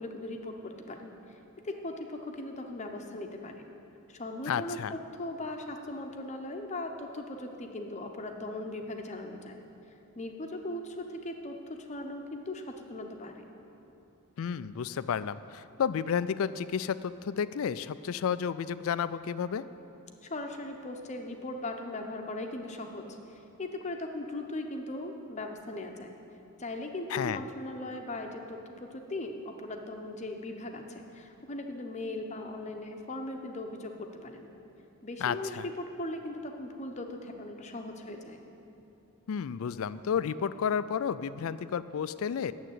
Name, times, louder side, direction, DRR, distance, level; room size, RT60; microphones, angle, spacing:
voice 1, 0.0-1.4 1.6-3.7 4.1-9.6 10.1-13.5 20.2-26.1 26.6-34.5 35.0-38.4, left 2 dB, 30° left, 4 dB, 0.8 m, -39 dB
voice 2, 4.5-4.9 14.4-19.6 27.1-27.4 35.2-35.7 39.3-42.5, left 7 dB, 65° left, 15 dB, 0.3 m, -31 dB
9.3 x 7.4 x 9.1 m, 3.0 s
head